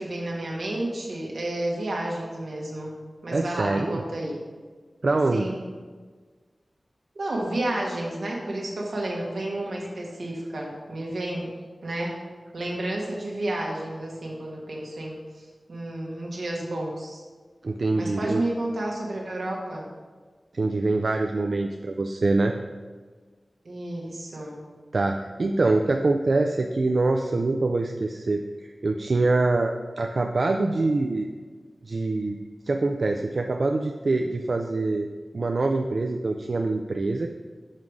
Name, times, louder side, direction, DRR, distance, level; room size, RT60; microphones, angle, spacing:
voice 1, 0.0-2.9 3.2-4.4 5.3-5.6 7.1-11.5 11.8-12.2 12.5-17.2 17.9-19.9 23.6-24.6, right 1 dB, 80° right, -2 dB, 1.3 m, -31 dB
voice 2, 3.3-4.0 5.0-5.5 17.6-18.4 20.5-22.5 24.9-31.3 31.8-35.1 35.3-37.3, right 2 dB, 60° right, 3 dB, 0.3 m, -24 dB
5.7 x 4.7 x 4.9 m, 1.5 s
wide cardioid pair, 95°, 0 cm